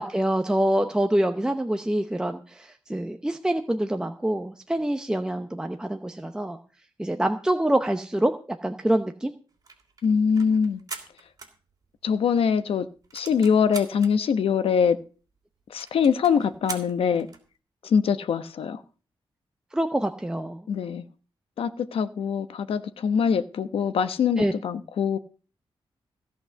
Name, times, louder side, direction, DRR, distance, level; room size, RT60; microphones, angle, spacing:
voice 1, 0.0-6.6 7.0-9.3 19.7-20.6 24.4-24.5, right 1 dB, 10° right, 0.8 m, -26 dB
sound 1, 9.5-12.2 12.5-12.6 12.8-14.1 14.7-14.8 15.0-15.1 15.4-15.5 15.8-17.5, right 4 dB, 40° right, 3.1 m, -41 dB
voice 2, 10.0-10.8 12.0-12.9 13.1-15.0 15.7-17.3 17.8-18.8 20.7-21.0 21.6-25.2, left 6 dB, 85° left, 1.0 m, -23 dB
16.0 x 5.7 x 7.6 m
wide cardioid pair, 135°, 9 cm